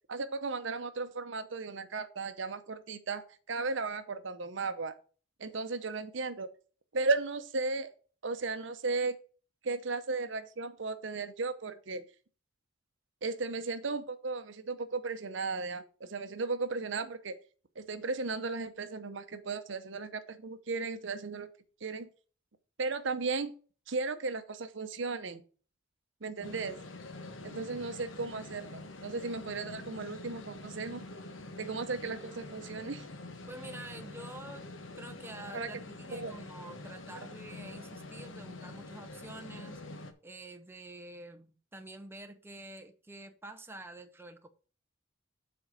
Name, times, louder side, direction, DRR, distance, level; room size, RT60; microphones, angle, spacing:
voice 1, 0.1-5.0 5.4-6.5 6.9-7.9 8.2-9.2 9.6-12.1 13.2-17.4 17.8-21.5 21.8-22.1 22.8-23.5 23.9-25.4 26.2-26.8 27.4-31.0 31.6-33.0 35.5-35.7 36.1-36.3, right 3 dB, 65° right, 0.8 m, -35 dB
sound 1, 26.4-40.1, left 2 dB, 80° left, 1.0 m, -46 dB
voice 2, 33.5-34.7 35.0-39.8 40.2-44.5, right 2 dB, 10° right, 0.7 m, -47 dB
7.6 x 4.4 x 6.4 m
head